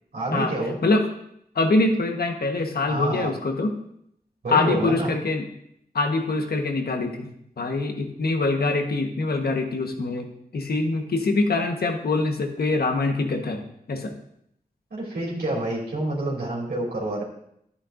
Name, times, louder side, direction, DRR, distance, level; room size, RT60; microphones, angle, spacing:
voice 1, 0.1-0.8 2.9-3.3 4.4-5.1 14.9-17.2, right 1 dB, 85° right, -4 dB, 2.9 m, -28 dB
voice 2, 1.5-3.7 4.5-5.4 5.9-7.3 7.6-10.3 10.5-13.6 13.9-14.1, left 3 dB, 80° left, 4 dB, 1.3 m, -24 dB
11.5 x 9.6 x 2.6 m, 0.74 s
cardioid pair, 45°, 16 cm